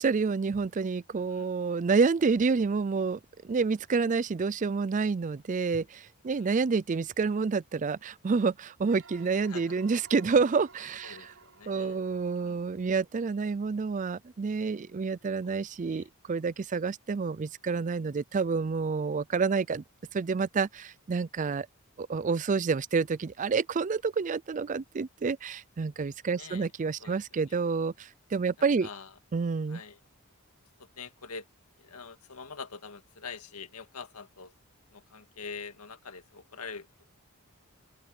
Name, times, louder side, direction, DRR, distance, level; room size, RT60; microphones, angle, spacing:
voice 1, 0.0-3.2 3.4-11.3 11.7-19.8 20.1-21.7 22.0-28.9 29.3-29.8, right 4 dB, 35° right, 0.4 m, -28 dB
sound 1, 8.8-13.4, right 5 dB, 60° right, 7.5 m, -56 dB
voice 2, 11.0-12.0 12.4-12.6 15.4-15.6 15.9-16.1 26.4-26.7 27.0-27.6 28.8-29.1 29.7-30.0 30.8-31.5 31.8-34.5 34.9-36.9, left 5 dB, 90° left, 1.9 m, -45 dB
open air
head